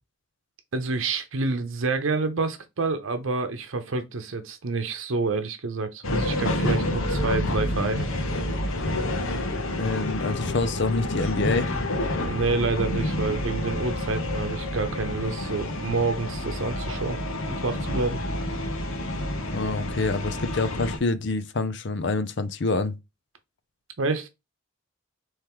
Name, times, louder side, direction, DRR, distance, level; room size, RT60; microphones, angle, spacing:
voice 1, 0.7-8.1 12.2-17.2 17.5-18.2 24.0-24.3, right 3 dB, 80° right, 0.8 m, -28 dB
sound 1, 6.0-21.0, left 1 dB, 85° left, 1.0 m, -28 dB
voice 2, 9.7-11.7 19.5-23.0, left 3 dB, 60° left, 0.6 m, -26 dB
4.5 x 3.2 x 3.6 m
head